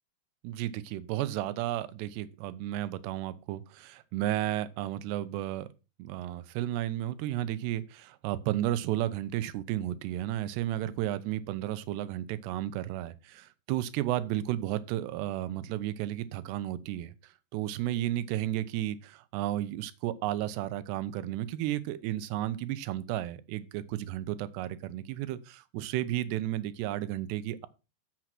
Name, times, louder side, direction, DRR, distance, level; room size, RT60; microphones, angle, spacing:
voice 1, 0.4-5.7 6.0-17.1 17.5-27.7, right 13 dB, 80° right, 2.8 m, -33 dB
8.0 x 6.0 x 5.9 m
omnidirectional pair, 4.9 m